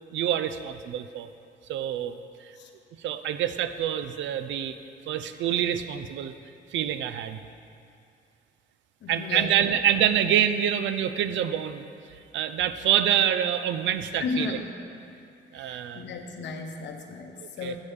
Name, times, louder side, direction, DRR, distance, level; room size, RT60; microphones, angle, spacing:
voice 1, 0.1-1.3 1.7-2.5 3.0-4.8 5.1-6.3 6.7-7.4 9.1-11.9 12.3-14.6 15.5-16.1 17.4-17.8, right 10 dB, 75° right, 10 dB, 0.4 m, -26 dB
voice 2, 9.0-9.5 14.2-14.6 15.5-17.8, left 4 dB, 65° left, 4 dB, 0.8 m, -34 dB
8.0 x 7.0 x 3.3 m, 2.5 s
cardioid pair, 90°, 20 cm